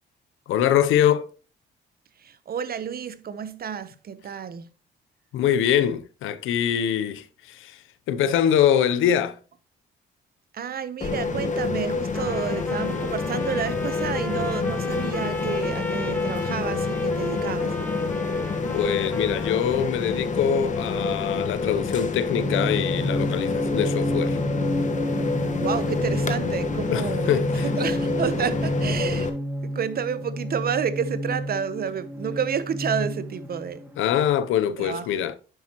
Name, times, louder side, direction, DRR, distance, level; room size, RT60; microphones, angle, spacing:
voice 1, 0.5-1.3 5.3-7.8 8.1-9.4 18.7-24.4 26.9-27.7 34.0-35.4, left 9 dB, 85° left, 0.8 m, -23 dB
voice 2, 2.2-4.7 10.5-17.8 25.6-29.3 29.6-33.8 34.8-35.1, right 7 dB, 50° right, 0.9 m, -30 dB
sound 1, 11.0-29.3, left 4 dB, 40° left, 1.4 m, -27 dB
Trumpet, 12.1-19.9, left 1 dB, 10° left, 1.1 m, -38 dB
sound 2, 22.3-34.3, equal, 10° right, 2.3 m, -30 dB
9.9 x 7.3 x 3.0 m
cardioid pair, 90°, 20 cm